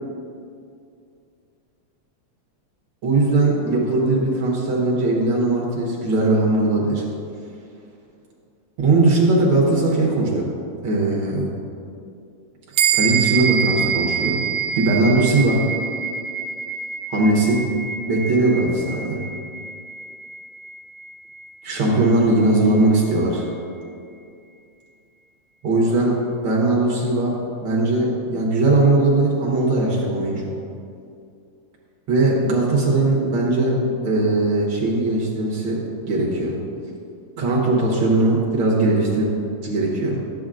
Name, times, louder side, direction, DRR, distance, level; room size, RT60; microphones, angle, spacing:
voice 1, 3.0-7.0 8.8-10.5 10.8-11.6 12.9-14.4 14.8-15.6 17.1-17.6 18.0-19.2 21.6-23.5 25.6-26.2 26.4-27.3 27.6-30.5 32.1-36.6 37.4-39.3 39.6-40.2, right 2 dB, 55° right, -4 dB, 1.8 m, -19 dB
sound 1, 12.8-22.5, right 7 dB, 80° right, 1.5 m, -26 dB
11.0 x 8.3 x 2.5 m, 2.5 s
omnidirectional pair, 3.3 m